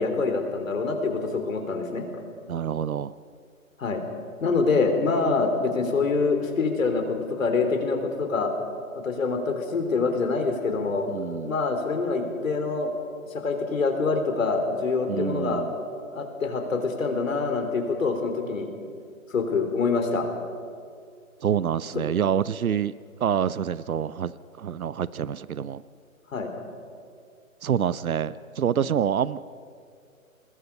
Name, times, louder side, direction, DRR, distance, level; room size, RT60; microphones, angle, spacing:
voice 1, 0.0-2.2 3.8-4.0 4.4-8.5 9.0-11.1 11.4-12.9 13.3-15.6 16.1-18.7 19.3-20.3 26.3-26.5, left 4 dB, 65° left, 5 dB, 4.0 m, -25 dB
voice 2, 2.5-3.1 11.1-11.5 15.1-15.7 21.4-22.9 23.2-25.8 27.6-29.4, right 8 dB, 80° right, 17 dB, 0.8 m, -27 dB
27.5 x 20.5 x 5.5 m, 2.3 s
hypercardioid pair, 150°, 42 cm